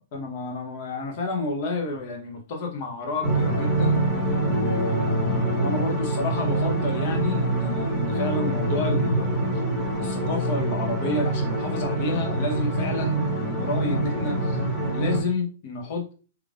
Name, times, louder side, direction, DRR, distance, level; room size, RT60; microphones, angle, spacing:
voice 1, 0.1-4.0 4.5-9.4 10.0-14.6 14.9-16.1, left 3 dB, 50° left, 1.0 m, -30 dB
sound 1, 3.2-15.2, right 2 dB, 5° left, 1.7 m, -25 dB
3.2 x 3.2 x 2.5 m
hypercardioid pair, 120°, 0 cm